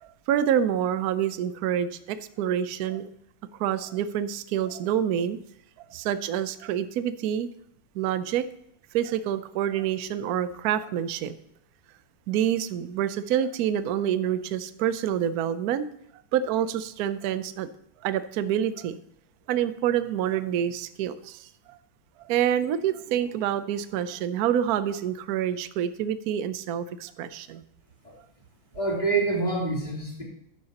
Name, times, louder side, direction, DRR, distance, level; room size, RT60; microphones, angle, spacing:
voice 1, 0.0-3.1 3.6-5.4 5.9-7.5 7.9-8.5 8.9-11.3 12.3-15.9 16.3-17.7 18.0-19.0 19.5-21.8 22.3-27.6, right 10 dB, 65° right, 12 dB, 0.9 m, -27 dB
voice 2, 28.7-30.2, right 3 dB, 20° left, -5 dB, 3.4 m, -26 dB
12.0 x 10.5 x 2.9 m, 0.75 s
omnidirectional pair, 2.1 m